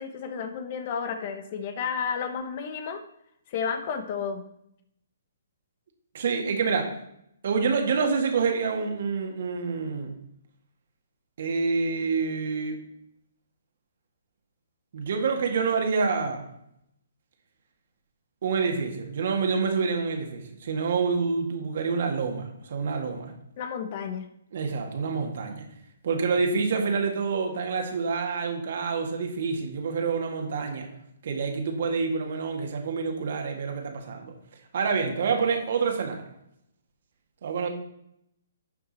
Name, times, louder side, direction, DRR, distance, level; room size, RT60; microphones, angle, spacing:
voice 1, 0.0-3.0 3.5-4.4 23.6-24.3, left 6 dB, 45° left, 8 dB, 0.9 m, -32 dB
voice 2, 6.1-6.9 7.4-10.1 11.4-12.8 14.9-16.5 18.4-23.3 24.5-25.6 26.0-30.9 31.2-34.3 34.7-36.2 37.4-37.7, right 5 dB, 55° right, 3 dB, 2.0 m, -27 dB
11.5 x 5.9 x 4.3 m, 0.76 s
figure-of-eight pair, 130°, 0 cm